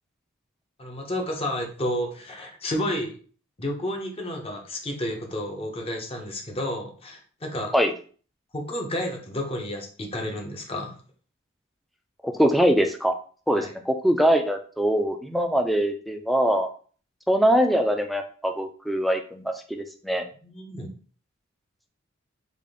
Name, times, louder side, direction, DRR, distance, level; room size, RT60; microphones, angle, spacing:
voice 1, 0.8-3.2 3.6-7.7 8.5-11.0 13.5-13.7 20.4-20.9, left 1 dB, 30° left, 2 dB, 0.7 m, -31 dB
voice 2, 12.2-13.1 13.5-16.7 17.3-20.2, equal, ahead, 5 dB, 0.4 m, -23 dB
3.5 x 2.4 x 3.6 m, 0.41 s
head